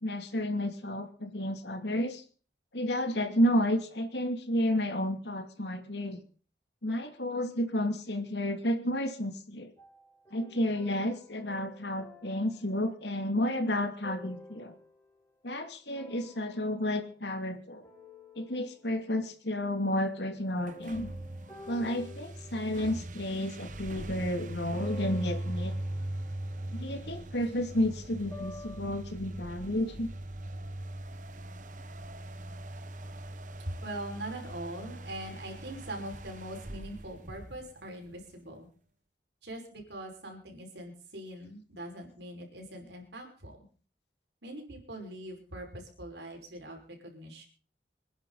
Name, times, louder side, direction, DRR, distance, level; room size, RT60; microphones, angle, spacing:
voice 1, 0.0-2.2 2.7-6.2 6.8-9.7 10.3-14.7 15.4-17.8 18.4-21.1 21.7-25.7 26.7-30.1, left 1 dB, 75° left, 7 dB, 2.6 m, -31 dB
sound 1, 9.8-15.2 15.9-17.6 17.8-19.1 20.7-23.8 24.7-28.8, left 1 dB, 15° left, 4.5 m, -51 dB
sound 2, 20.6-38.1, right 1 dB, 45° right, 1.1 m, -40 dB
voice 2, 33.6-38.7 39.4-43.7 44.4-47.5, right 1 dB, 75° right, 2 dB, 5.5 m, -42 dB
26.5 x 10.5 x 4.1 m, 0.41 s
head